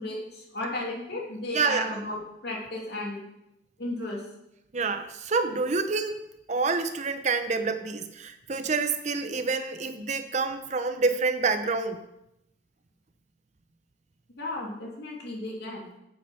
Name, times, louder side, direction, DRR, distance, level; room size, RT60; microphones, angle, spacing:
voice 1, 0.0-3.2 3.8-4.3 14.4-15.9, left 1 dB, 55° left, -2 dB, 2.8 m, -34 dB
voice 2, 1.5-1.9 4.7-6.2 6.5-12.0, right 4 dB, 35° right, 9 dB, 0.6 m, -27 dB
9.2 x 7.6 x 5.7 m, 0.84 s
head